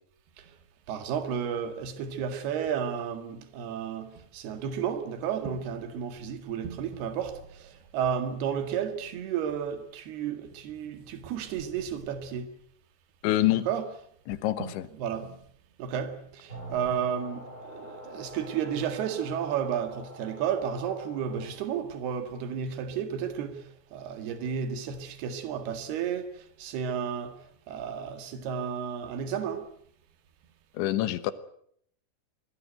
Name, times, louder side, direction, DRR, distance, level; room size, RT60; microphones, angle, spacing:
voice 1, 0.9-7.4 7.9-12.5 13.6-13.9 14.6-14.7 15.0-15.4 15.8-26.3 26.6-27.4 27.7-29.7, right 8 dB, 65° right, 3.8 m, -32 dB
voice 2, 13.2-13.7 14.3-14.9 30.8-31.3, left 14 dB, 85° left, 3.5 m, -26 dB
sound 1, 16.5-21.5, equal, 15° left, 8.1 m, -45 dB
24.0 x 19.5 x 8.0 m
omnidirectional pair, 5.2 m